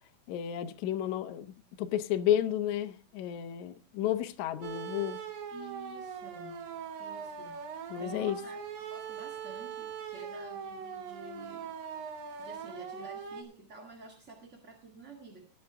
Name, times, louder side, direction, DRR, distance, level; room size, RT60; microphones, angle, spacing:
voice 1, 0.3-5.2 7.9-8.4, left 11 dB, 70° left, 1.8 m, -32 dB
sound 1, 4.6-13.4, right 6 dB, 70° right, 3.3 m, -41 dB
voice 2, 5.5-6.6 7.0-7.6 8.0-8.6 8.9-11.7 12.4-15.5, right 3 dB, 30° right, 1.3 m, -50 dB
19.0 x 8.9 x 3.5 m
omnidirectional pair, 4.3 m